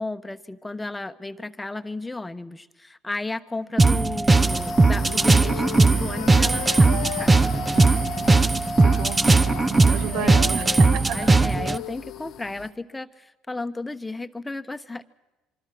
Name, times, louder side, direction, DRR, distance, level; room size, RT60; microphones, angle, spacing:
voice 1, 0.0-7.4 10.0-15.0, left 2 dB, 10° left, 11 dB, 1.1 m, -34 dB
sound 1, 3.8-11.8, right 3 dB, 20° right, 0.7 m, -19 dB
sound 2, 4.3-12.7, left 10 dB, 60° left, 1.1 m, -41 dB
Wind instrument woodwind instrument, 4.9-12.4, left 14 dB, 90° left, 0.9 m, -37 dB
voice 2, 7.7-10.7 10.9-11.4, right 11 dB, 65° right, 16 dB, 1.0 m, -34 dB
25.0 x 25.0 x 6.1 m, 1.1 s
supercardioid pair, 80°, 0 cm